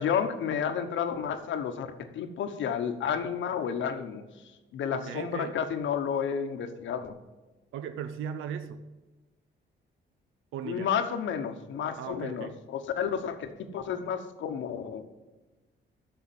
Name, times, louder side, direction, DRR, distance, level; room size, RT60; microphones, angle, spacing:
voice 1, 0.0-4.2 4.7-7.1 10.7-15.0, left 7 dB, 75° left, 8 dB, 1.1 m, -31 dB
voice 2, 4.9-5.6 7.7-8.8 10.5-10.9 12.0-12.6, right 8 dB, 85° right, 12 dB, 0.7 m, -37 dB
6.9 x 6.7 x 7.7 m, 1.1 s
cardioid pair, 90°, 20 cm